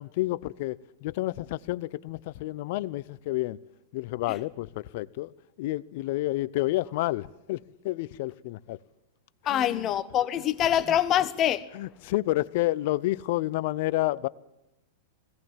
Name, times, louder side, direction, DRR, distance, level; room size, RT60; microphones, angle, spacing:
voice 1, 0.0-3.6 3.9-5.3 5.6-8.8 9.5-9.9 11.7-14.3, left 17 dB, 55° left, 0.7 m, -30 dB
voice 2, 9.4-11.6, left 11 dB, 35° left, 1.3 m, -25 dB
20.5 x 17.5 x 7.5 m
hypercardioid pair, 100°, 0 cm